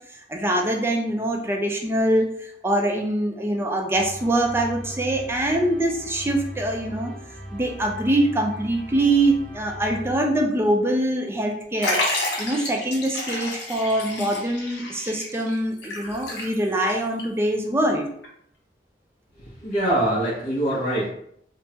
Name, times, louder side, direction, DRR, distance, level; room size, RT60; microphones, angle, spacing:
voice 1, 0.1-7.1 7.5-18.0, right 1 dB, 15° right, 1 dB, 0.4 m, -24 dB
sound 1, 3.9-10.9, equal, 80° right, 1.1 m, -39 dB
Liquid, 11.8-16.9 17.2-17.3 18.2-18.3, left 1 dB, 70° left, 0.9 m, -30 dB
voice 2, 19.4-21.1, right 1 dB, 45° left, -8 dB, 0.8 m, -24 dB
3.4 x 2.1 x 2.8 m, 0.69 s
head